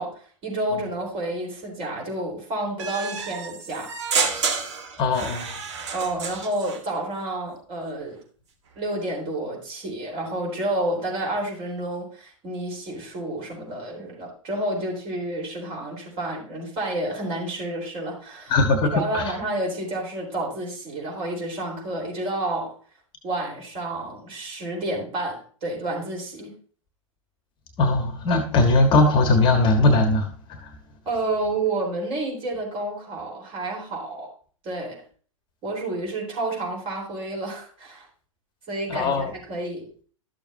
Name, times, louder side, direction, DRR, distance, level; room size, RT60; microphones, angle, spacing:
voice 1, 0.0-3.9 5.9-8.2 8.8-18.6 18.9-22.7 23.2-26.5 31.1-34.3 34.6-35.0 35.6-38.1 38.7-39.9, right 2 dB, 30° right, 0 dB, 4.1 m, -30 dB
sound 1, 2.8-6.8, right 5 dB, 55° right, 1.5 m, -29 dB
voice 2, 5.0-5.5 18.5-19.2 27.8-30.3 38.9-39.3, left 2 dB, 30° left, 6 dB, 1.2 m, -19 dB
12.5 x 7.0 x 2.7 m, 0.43 s
figure-of-eight pair, 105°, 17 cm